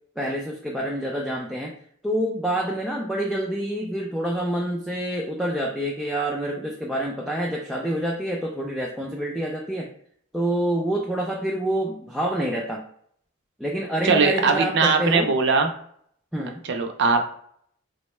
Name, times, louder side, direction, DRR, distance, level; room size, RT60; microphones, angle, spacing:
voice 1, 0.2-1.7 2.0-9.9 10.3-12.8 13.6-15.3 16.3-16.6, right 1 dB, ahead, -2 dB, 0.3 m, -27 dB
voice 2, 14.0-15.7 16.7-17.3, right 4 dB, 60° right, 5 dB, 0.5 m, -20 dB
3.6 x 2.1 x 3.0 m, 0.62 s
head